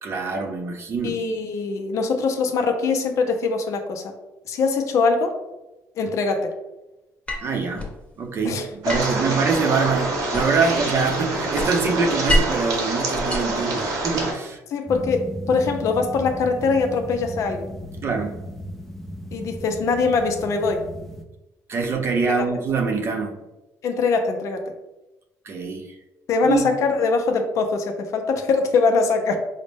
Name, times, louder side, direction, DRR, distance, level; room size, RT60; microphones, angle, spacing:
voice 1, 0.0-1.1 7.4-7.9 8.2-14.6 18.0-18.4 21.7-23.4 25.4-25.9 26.4-26.6, right 4 dB, 45° right, 3 dB, 0.6 m, -24 dB
voice 2, 1.0-4.1 4.4-5.4 6.0-6.5 8.4-9.0 14.7-17.7 19.3-20.8 23.8-24.7 26.3-29.4, left 4 dB, 60° left, 5 dB, 0.5 m, -22 dB
sound 1, 7.3-8.0 8.9-10.7 11.1-12.7 13.1-14.2, equal, 20° left, 0.9 m, -27 dB
sound 2, 8.8-14.3, right 2 dB, 75° right, 0.9 m, -26 dB
sound 3, 14.9-21.2, equal, 5° left, 0.5 m, -35 dB
4.0 x 2.1 x 3.3 m, 0.99 s
cardioid pair, 90°, 6 cm